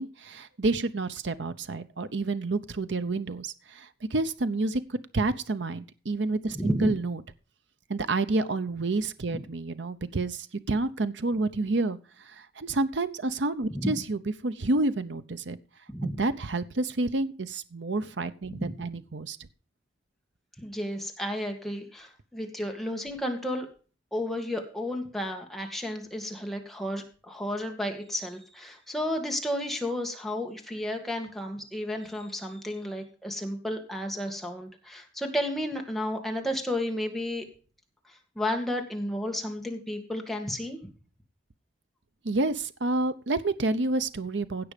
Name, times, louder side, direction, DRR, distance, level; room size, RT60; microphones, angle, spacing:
voice 1, 0.0-7.2 7.9-15.6 16.0-19.4 42.2-44.7, right 2 dB, 80° right, 12 dB, 0.8 m, -29 dB
voice 2, 6.5-6.9 9.3-9.4 13.7-13.9 15.9-16.2 18.5-18.7 20.6-23.7 24.1-37.5 38.1-40.8, left 1 dB, ahead, 2 dB, 2.2 m, -32 dB
16.5 x 6.1 x 5.1 m, 0.37 s
head